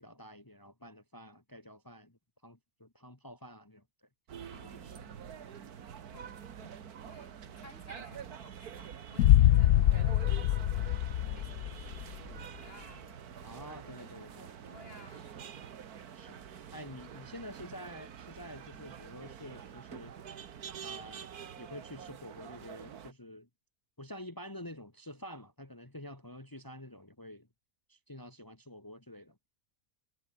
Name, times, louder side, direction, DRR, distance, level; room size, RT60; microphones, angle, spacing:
voice 1, 0.0-4.1 4.6-5.1 6.1-6.3 13.4-14.4 16.1-16.4 16.7-20.2 20.8-21.3 21.6-23.5 24.0-27.5 27.9-29.4, left 1 dB, 15° left, 2.1 m, -48 dB
sound 1, 4.3-23.1, right 8 dB, 90° right, 1.8 m, -47 dB
voice 2, 4.5-5.1 6.1-6.8 7.0-13.0 13.6-15.8, left 2 dB, 40° left, 4.1 m, -57 dB
sound 2, 9.2-12.2, left 12 dB, 75° left, 1.1 m, -24 dB
omnidirectional pair, 1.5 m